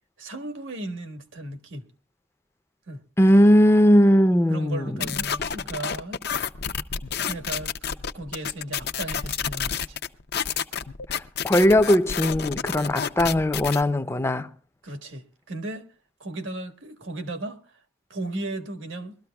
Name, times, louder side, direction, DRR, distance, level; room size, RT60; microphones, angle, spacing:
voice 1, 0.2-1.9 2.9-3.0 4.5-6.2 7.3-7.7 8.1-9.8 14.8-15.9 16.2-17.6 18.1-19.2, right 2 dB, 85° right, 1.5 m, -35 dB
voice 2, 3.2-5.1 11.1-14.5, equal, 15° left, 0.5 m, -19 dB
sound 1, 5.0-13.8, left 7 dB, 55° left, 0.6 m, -29 dB
22.5 x 13.5 x 2.3 m
head